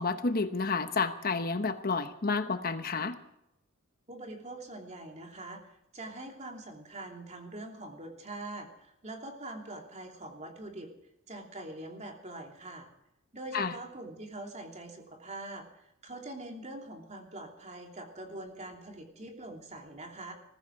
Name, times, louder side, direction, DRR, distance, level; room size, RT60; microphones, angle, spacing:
voice 1, 0.0-3.2 13.5-13.7, left 4 dB, 45° left, 9 dB, 1.0 m, -30 dB
voice 2, 4.1-10.9 11.3-12.9 13.3-20.3, right 2 dB, 35° right, 3 dB, 3.0 m, -44 dB
20.5 x 15.0 x 4.8 m, 0.83 s
head